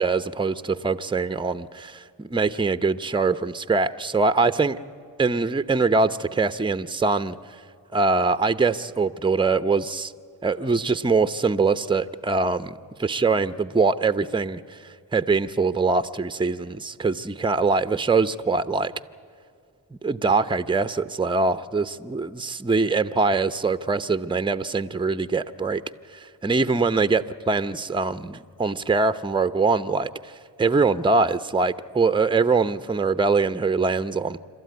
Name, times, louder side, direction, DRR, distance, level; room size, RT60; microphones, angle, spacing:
voice 1, 0.0-4.8 5.2-7.4 7.9-10.1 10.4-14.8 15.1-18.9 20.0-25.8 26.4-30.3 30.6-34.4, right 4 dB, 10° right, 13 dB, 0.7 m, -23 dB
27.0 x 12.5 x 9.5 m, 2.2 s
supercardioid pair, 50°, 43 cm